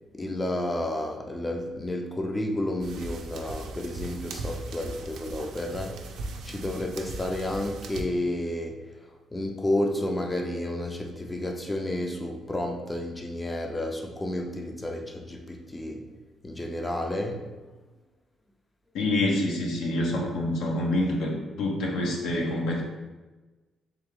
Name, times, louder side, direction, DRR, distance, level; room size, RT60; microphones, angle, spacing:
voice 1, 0.1-6.0 6.4-8.8 9.3-16.1 16.4-17.5, left 1 dB, 15° left, 3 dB, 0.4 m, -31 dB
sound 1, 2.8-8.0, right 3 dB, 80° right, 0.4 m, -38 dB
voice 2, 18.9-22.8, left 1 dB, 85° left, 0 dB, 0.8 m, -27 dB
3.4 x 3.4 x 3.5 m, 1.2 s
cardioid pair, 90°, 0 cm